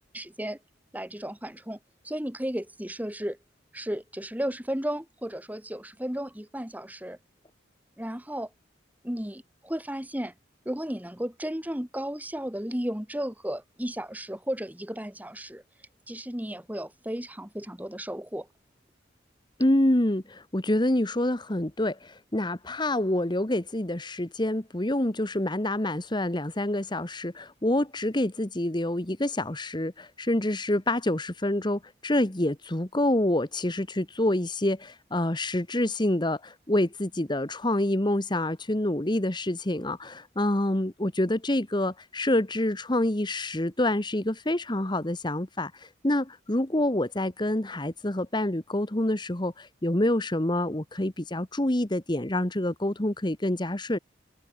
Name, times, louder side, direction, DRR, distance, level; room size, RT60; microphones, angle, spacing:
voice 1, 0.1-0.6 0.9-1.8 2.0-3.4 3.7-7.2 8.0-8.5 9.0-10.3 10.6-15.6 16.1-18.5, equal, 10° right, 1.8 m, -34 dB
voice 2, 19.6-54.0, left 1 dB, 25° left, 1.3 m, -27 dB
head